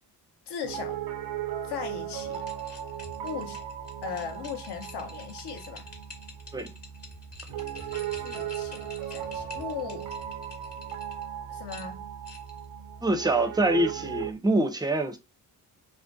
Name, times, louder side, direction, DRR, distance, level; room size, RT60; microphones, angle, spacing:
voice 1, 0.5-1.0 1.6-2.4 3.2-3.6 4.0-5.9 8.2-10.1 11.5-12.0, left 6 dB, 65° left, 0.7 m, -38 dB
Piano, 0.6-14.3, right 10 dB, 90° right, 0.5 m, -37 dB
sound 1, 2.1-11.2 11.7-12.7, left 3 dB, 35° left, 0.9 m, -47 dB
voice 2, 13.0-15.2, right 2 dB, 10° right, 0.4 m, -25 dB
2.4 x 2.1 x 2.5 m
cardioid pair, 65°, 43 cm